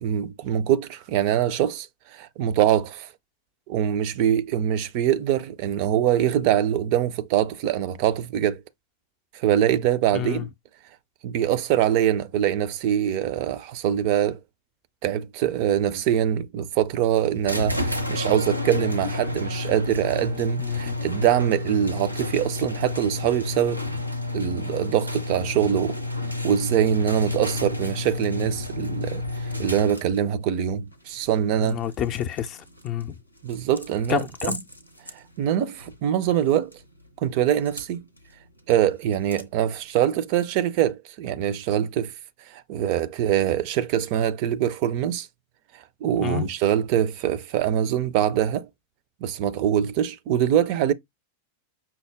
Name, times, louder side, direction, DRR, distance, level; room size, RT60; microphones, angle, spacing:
voice 1, 0.0-3.1 3.7-8.6 9.3-10.5 11.2-14.4 15.0-23.8 24.3-26.0 26.4-29.2 29.6-31.8 33.4-34.6 35.1-36.7 37.2-38.0 38.7-42.1 42.5-45.3 46.0-48.7 49.2-50.9, right 10 dB, 45° right, 0.4 m, -23 dB
voice 2, 10.1-10.5 20.6-20.8 31.6-32.6 32.8-33.2 34.1-34.6 46.2-46.5, left 11 dB, 35° left, 0.5 m, -28 dB
sound 1, 17.4-30.2, left 2 dB, 90° right, 0.6 m, -30 dB
sound 2, 27.5-40.9, left 1 dB, 90° left, 0.6 m, -46 dB
5.7 x 2.1 x 3.3 m
figure-of-eight pair, 90°, 0 cm